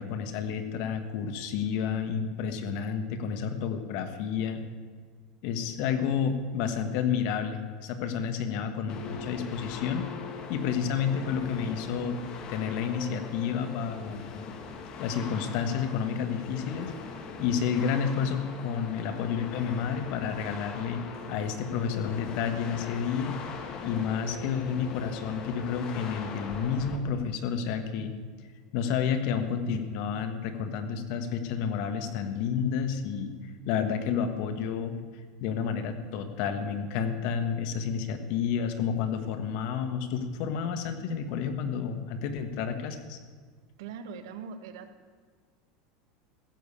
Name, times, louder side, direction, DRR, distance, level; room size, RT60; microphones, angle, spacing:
voice 1, 0.0-4.6 5.4-10.1 10.5-12.2 12.5-14.5 15.0-16.9 17.4-21.0 21.3-23.4 23.8-28.1 28.7-33.3 33.6-35.0 35.4-43.2, left 7 dB, 50° left, 8 dB, 1.4 m, -30 dB
sound 1, 8.9-27.0, left 5 dB, 30° left, 1.3 m, -41 dB
voice 2, 43.8-44.9, right 6 dB, 80° right, 9 dB, 1.3 m, -41 dB
15.0 x 7.2 x 8.5 m, 1.5 s
supercardioid pair, 165°, 2 cm